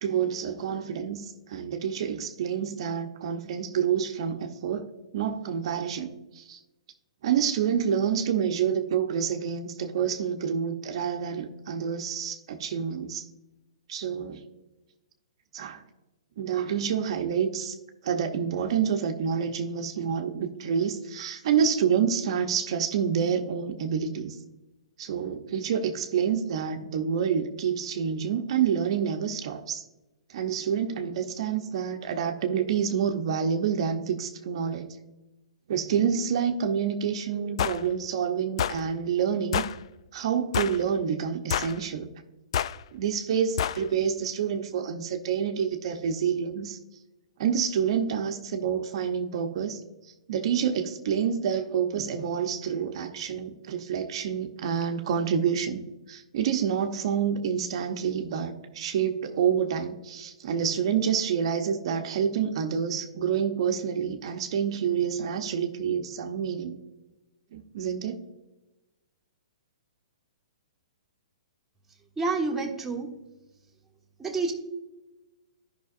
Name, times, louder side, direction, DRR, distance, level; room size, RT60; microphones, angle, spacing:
voice 1, 0.0-6.6 7.2-13.3 13.9-14.4 15.5-15.8 16.4-17.8 18.0-24.4 25.0-29.8 30.3-34.9 35.7-39.6 40.1-42.1 42.9-46.8 47.4-55.8 56.1-66.8 67.5-68.2, right 7 dB, 55° right, 5 dB, 0.7 m, -28 dB
sound 1, 37.6-37.8 38.6-38.8 39.5-39.8 40.5-40.8 41.5-41.8 42.5-42.8 43.6-43.8, left 9 dB, 60° left, 0.3 m, -27 dB
voice 2, 72.2-73.1 74.2-74.5, right 3 dB, 5° right, -2 dB, 1.4 m, -28 dB
13.0 x 5.6 x 2.5 m, 1.0 s
hypercardioid pair, 135°, 3 cm